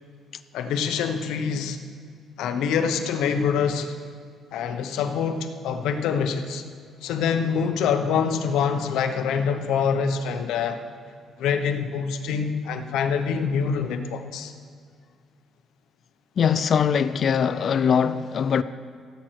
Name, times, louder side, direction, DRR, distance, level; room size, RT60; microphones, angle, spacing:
voice 1, 0.5-1.8 2.4-4.0 4.5-6.6 7.0-10.8 11.4-14.5, left 6 dB, 90° left, 0.9 m, -25 dB
voice 2, 16.4-18.6, left 7 dB, 45° left, 0.4 m, -21 dB
15.5 x 7.9 x 4.6 m
cardioid pair, 135°, 0 cm